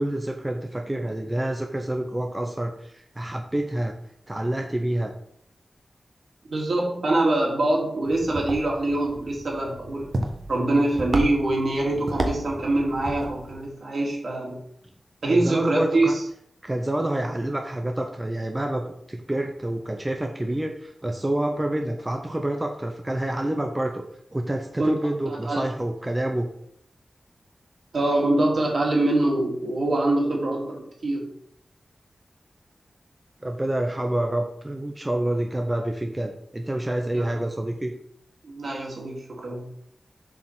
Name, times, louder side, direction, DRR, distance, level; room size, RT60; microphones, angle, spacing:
voice 1, 0.0-4.0 4.3-5.1 15.2-16.1 16.6-24.0 24.3-26.5 33.4-37.9, right 1 dB, 15° right, 3 dB, 0.8 m, -28 dB
voice 2, 6.5-10.1 10.5-14.6 15.2-16.2 24.8-24.9 25.3-25.6 27.9-31.3 37.1-37.2 38.4-39.7, right 2 dB, 70° right, -2 dB, 2.9 m, -24 dB
sound 1, 8.0-13.6, right 1 dB, 55° right, 1.4 m, -33 dB
7.4 x 5.0 x 6.1 m, 0.69 s
wide cardioid pair, 115°, 0 cm